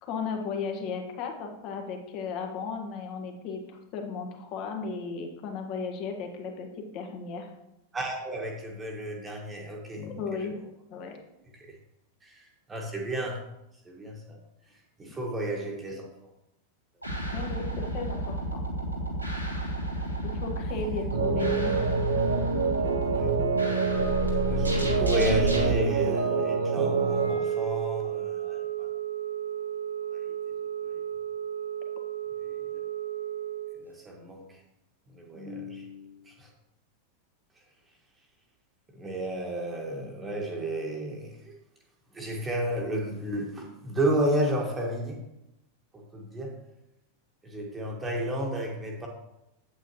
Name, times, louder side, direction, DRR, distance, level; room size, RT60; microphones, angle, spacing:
voice 1, 0.0-7.5 10.0-10.6 10.9-11.2 17.3-18.6 20.2-21.8, left 5 dB, 40° left, 4 dB, 1.4 m, -35 dB
voice 2, 7.9-10.1 10.3-10.5 11.7-11.8 12.2-13.4 13.8-14.4 15.0-16.1 23.0-23.4 24.1-28.9 30.1-30.3 30.9-31.0 32.4-32.5 33.8-34.6 35.1-36.5 38.9-41.6 42.1-45.2 45.9-46.6 47.4-49.1, right 1 dB, 15° right, 0 dB, 1.4 m, -32 dB
sound 1, 17.0-25.7, right 1 dB, 90° right, 1.7 m, -31 dB
sound 2, 21.1-27.3, right 4 dB, 60° right, 1.1 m, -26 dB
Wind instrument woodwind instrument, 26.7-33.9, right 10 dB, 90° left, 0.5 m, -33 dB
8.4 x 8.1 x 3.0 m, 0.88 s
figure-of-eight pair, 90°, 0 cm